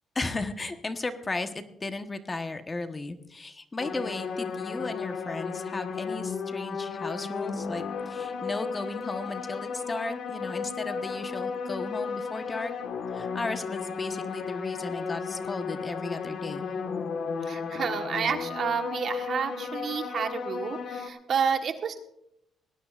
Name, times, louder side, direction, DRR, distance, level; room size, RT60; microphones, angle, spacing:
voice 1, 0.1-12.7 13.1-16.7, left 3 dB, 25° left, 8 dB, 1.2 m, -35 dB
sound 1, 3.8-21.1, left 5 dB, 65° left, 1.5 m, -34 dB
voice 2, 17.4-22.0, right 6 dB, 55° right, 6 dB, 1.4 m, -30 dB
19.5 x 17.5 x 2.5 m, 0.75 s
cardioid pair, 90°, 0 cm